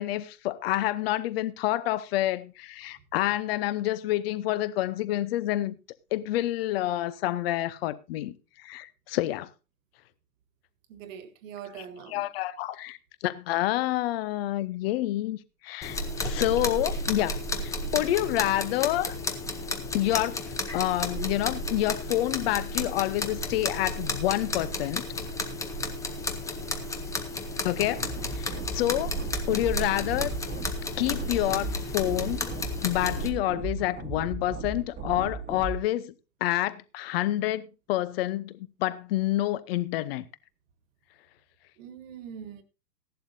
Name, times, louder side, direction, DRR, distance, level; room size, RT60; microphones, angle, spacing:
voice 1, 0.0-5.7 6.1-9.5 11.8-13.0 13.2-15.4 15.6-19.2 19.9-25.0 27.6-29.1 29.5-30.4 31.0-32.5 32.8-36.1 36.4-40.2, left 15 dB, 35° left, 0.8 m, -28 dB
voice 2, 10.9-12.2 41.8-42.6, right 8 dB, 50° right, 1.7 m, -42 dB
sound 1, 15.8-33.3, left 2 dB, 5° left, 0.8 m, -33 dB
sound 2, 27.8-35.8, right 3 dB, 15° right, 1.4 m, -36 dB
15.5 x 11.5 x 2.7 m
hypercardioid pair, 130°, 50 cm